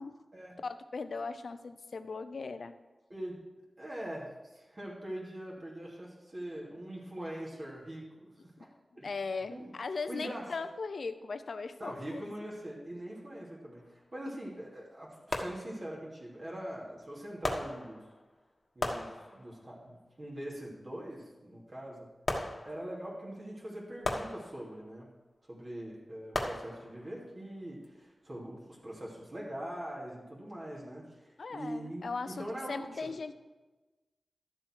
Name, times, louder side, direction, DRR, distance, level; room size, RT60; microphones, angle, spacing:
voice 1, 0.6-2.7 9.0-12.2 31.4-33.3, left 4 dB, 75° left, 10 dB, 0.7 m, -38 dB
voice 2, 3.8-8.3 8.6-8.7 8.9-9.1 9.5-9.7 10.1-10.5 11.8-18.0 18.7-22.1 22.6-25.1 25.5-33.1, right 1 dB, 40° right, -5 dB, 3.1 m, -42 dB
sound 1, 13.8-13.9 15.3-16.1 17.4-18.3 18.8-19.8 22.3-23.2 24.0-25.0 26.3-27.2 27.8-27.9, left 2 dB, 50° left, 1.3 m, -37 dB
12.5 x 7.6 x 4.8 m, 1.2 s
wide cardioid pair, 95°, 0 cm